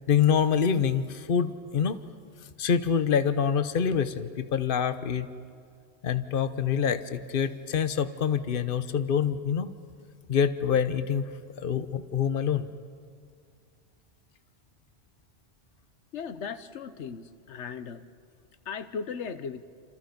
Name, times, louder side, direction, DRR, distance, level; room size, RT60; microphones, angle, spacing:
voice 1, 0.1-2.0 2.6-5.3 6.0-9.7 10.3-12.7, left 7 dB, 55° left, 11 dB, 1.1 m, -26 dB
voice 2, 16.1-18.0 18.6-19.6, left 6 dB, 90° left, 11 dB, 1.2 m, -37 dB
29.0 x 27.0 x 5.3 m, 2.2 s
omnidirectional pair, 1.1 m